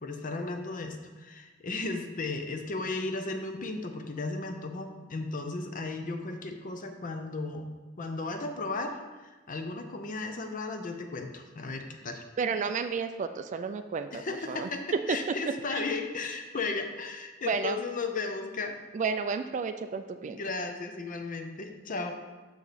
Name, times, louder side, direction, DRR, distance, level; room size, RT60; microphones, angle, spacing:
voice 1, 0.0-12.2 14.1-18.7 20.2-22.2, left 3 dB, 45° left, 5 dB, 0.7 m, -35 dB
voice 2, 12.4-14.7 15.1-15.2 15.7-15.8 17.5-17.8 18.9-20.4, right 5 dB, 40° right, 9 dB, 0.3 m, -31 dB
6.6 x 4.8 x 4.1 m, 1.2 s
head